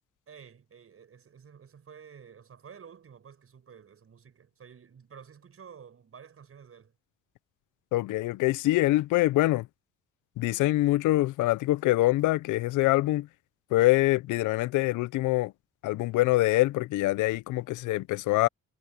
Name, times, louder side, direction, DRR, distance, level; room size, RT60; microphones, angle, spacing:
voice 1, 0.3-6.9, right 7 dB, 50° right, 6.1 m, -51 dB
voice 2, 7.9-9.7 10.4-13.3 13.7-15.5 15.8-18.5, left 18 dB, 90° left, 0.6 m, -24 dB
cardioid pair, 90°, 30 cm